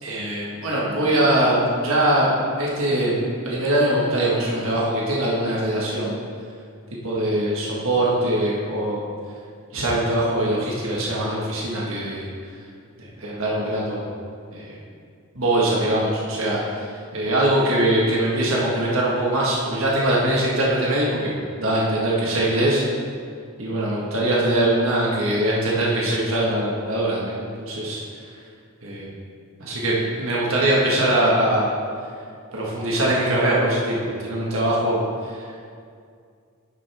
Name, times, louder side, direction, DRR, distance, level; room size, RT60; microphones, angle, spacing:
voice 1, 0.0-2.3 2.6-3.2 3.4-6.1 7.0-9.0 9.7-12.2 13.0-14.1 14.5-14.8 15.3-16.1 16.4-16.6 17.1-22.8 23.6-28.3 28.8-29.1 29.6-31.7 32.5-35.3, right 1 dB, 70° right, -5 dB, 1.6 m, -22 dB
10.5 x 7.4 x 3.6 m, 2.2 s
head